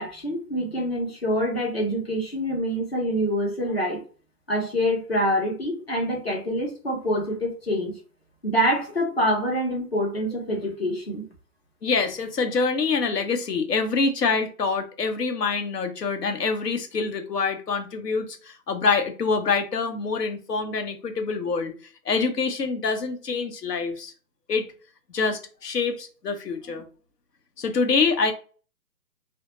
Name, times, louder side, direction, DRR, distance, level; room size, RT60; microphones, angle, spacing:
voice 1, 0.0-4.0 4.5-8.0 8.4-11.3, equal, 40° left, -1 dB, 0.8 m, -26 dB
voice 2, 11.8-21.7 22.1-24.1 24.5-24.7 25.1-26.8 27.6-28.3, left 4 dB, 70° left, 6 dB, 0.8 m, -25 dB
2.1 x 2.1 x 2.9 m, 0.38 s
hypercardioid pair, 180°, 50 cm